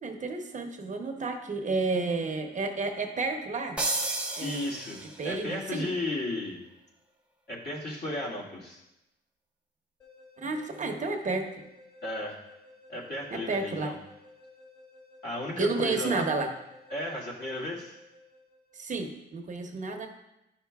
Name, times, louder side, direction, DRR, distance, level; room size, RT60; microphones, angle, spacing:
voice 1, 0.0-3.8 4.1-4.7 5.2-5.9 10.4-11.5 13.3-14.0 15.6-16.5 18.7-20.1, right 3 dB, 40° right, 4 dB, 0.8 m, -31 dB
sound 1, 3.8-5.4, right 2 dB, 5° right, 0.9 m, -32 dB
voice 2, 4.4-6.6 7.5-8.8 12.0-12.4 12.9-14.0 15.2-16.3 16.9-18.0, left 1 dB, 55° left, -4 dB, 2.0 m, -34 dB
sound 2, 10.0-18.9, left 2 dB, 20° left, 1.6 m, -55 dB
10.5 x 5.7 x 2.3 m, 0.90 s
cardioid pair, 90°, 20 cm